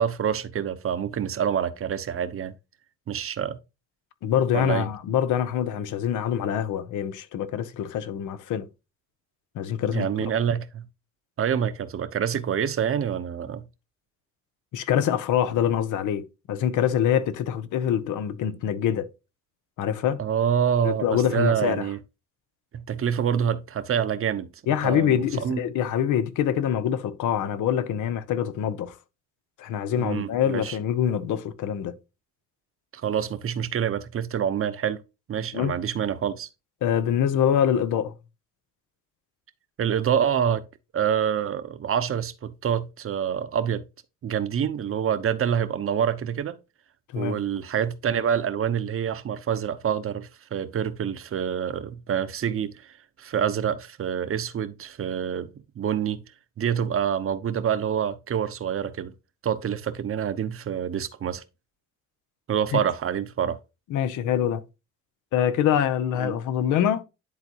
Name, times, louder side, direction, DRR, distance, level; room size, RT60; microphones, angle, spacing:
voice 1, 0.0-2.5 3.1-3.6 4.5-4.9 9.9-10.9 11.4-13.7 20.2-22.0 22.7-24.5 24.8-25.6 30.0-30.8 32.9-35.0 35.3-36.5 39.8-40.7 40.9-43.8 44.2-46.6 47.2-55.5 55.8-56.2 56.6-59.1 59.4-61.4 62.5-63.6 66.2-66.3, right 8 dB, 45° right, 0.8 m, -26 dB
voice 2, 4.2-8.7 9.5-10.3 14.7-19.1 19.8-20.2 20.8-21.9 24.7-28.9 29.6-32.0 35.5-35.7 36.8-38.1 47.1-47.4 62.7-62.8 63.9-64.6 65.3-67.0, left 9 dB, 85° left, 0.8 m, -25 dB
10.5 x 3.9 x 2.9 m
cardioid pair, 90°, 30 cm